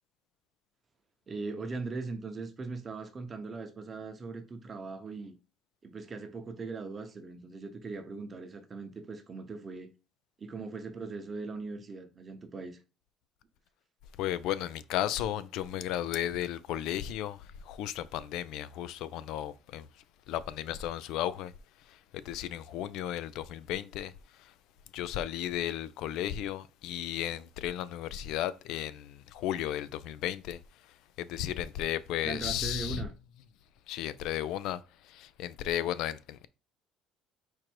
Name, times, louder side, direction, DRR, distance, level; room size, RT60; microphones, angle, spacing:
voice 1, 1.3-5.3 5.8-9.9 10.4-12.8 32.2-33.1, right 3 dB, 25° right, 0.8 m, -40 dB
voice 2, 14.2-17.4 17.7-19.9 20.3-21.5 22.1-24.1 24.9-30.6 31.2-33.0 33.9-34.8 35.1-36.5, left 11 dB, 70° left, 0.4 m, -34 dB
4.4 x 2.5 x 4.5 m
cardioid pair, 125°, 0 cm